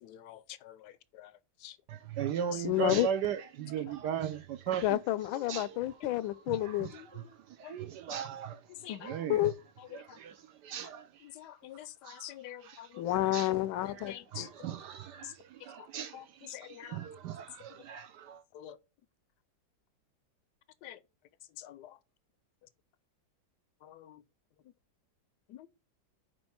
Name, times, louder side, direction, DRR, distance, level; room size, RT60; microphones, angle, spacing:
voice 1, 0.0-1.3 1.6-1.8 7.6-7.8 8.8-9.2 11.4-13.1 14.1-14.5 15.2-15.3 16.1-16.2 16.5-17.0 18.5-18.8 20.8-21.0 21.6-22.0 23.8-24.2 25.5-25.7, left 12 dB, 75° left, 1.0 m, -47 dB
voice 2, 1.9-5.0 5.5-5.8 6.5-9.5 9.9-11.3 12.0-12.3 12.6-13.5 13.9-18.4, right 9 dB, 70° right, 1.1 m, -38 dB
voice 3, 2.6-3.1 4.8-6.9 8.9-9.5 13.0-14.5, left 15 dB, 90° left, 1.4 m, -30 dB
5.3 x 4.5 x 5.7 m
omnidirectional pair, 2.1 m